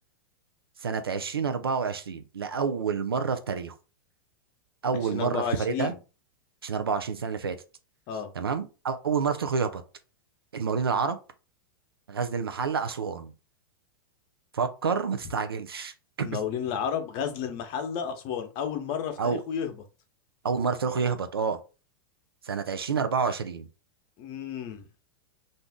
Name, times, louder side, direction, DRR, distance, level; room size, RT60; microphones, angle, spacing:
voice 1, 0.8-3.7 4.8-5.9 6.6-7.6 8.3-9.8 10.5-11.2 12.1-13.3 14.5-15.9 16.2-16.4 19.2-19.4 20.4-21.6 22.4-23.7, right 5 dB, 90° right, 9 dB, 0.5 m, -28 dB
voice 2, 4.9-6.0 8.1-8.3 16.2-19.8 24.2-24.9, left 8 dB, 45° left, 6 dB, 0.8 m, -32 dB
2.6 x 2.4 x 3.5 m, 0.32 s
hypercardioid pair, 105°, 12 cm